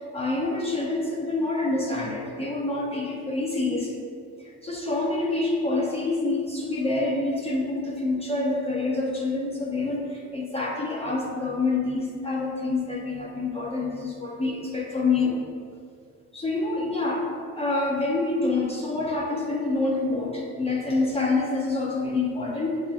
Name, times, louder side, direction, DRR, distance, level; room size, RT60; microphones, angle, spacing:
voice 1, 0.1-4.0 4.4-15.3 16.3-17.3 17.5-22.8, left 3 dB, 20° left, -3 dB, 0.5 m, -27 dB
7.1 x 2.4 x 2.4 m, 2.3 s
cardioid pair, 110°, 31 cm